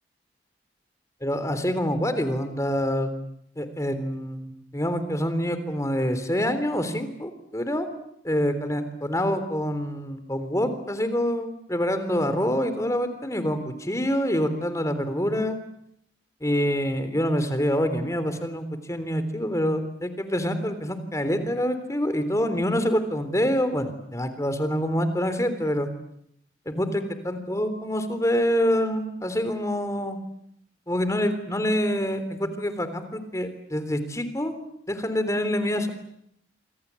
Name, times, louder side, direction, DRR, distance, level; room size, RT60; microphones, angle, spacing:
voice 1, 1.2-3.1 3.6-7.9 8.2-15.6 16.4-25.9 26.7-30.2 30.9-34.5 34.9-35.9, equal, 20° left, 10 dB, 3.5 m, -26 dB
27.0 x 26.0 x 8.4 m, 0.74 s
head